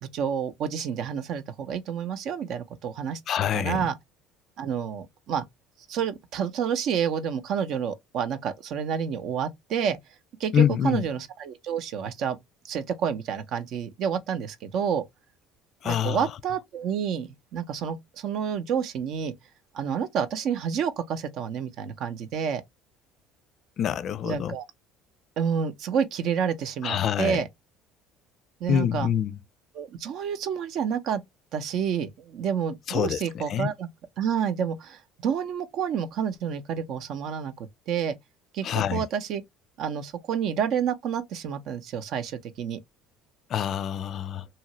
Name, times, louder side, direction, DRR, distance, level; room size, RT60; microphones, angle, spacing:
voice 1, 0.1-3.2 3.5-3.9 4.6-5.4 5.9-10.0 10.4-12.4 12.6-15.0 15.8-19.3 19.7-22.6 24.2-24.6 25.4-27.5 28.6-29.1 29.7-31.2 31.5-33.9 34.2-38.2 38.5-39.4 39.8-42.8, right 7 dB, 60° right, 0.6 m, -29 dB
voice 2, 3.3-3.9 10.5-11.0 15.8-16.3 23.8-24.6 26.8-27.4 28.7-29.4 32.9-33.7 38.6-39.0 43.5-44.5, left 9 dB, 50° left, 0.3 m, -26 dB
2.8 x 2.4 x 2.9 m
supercardioid pair, 95°, 0 cm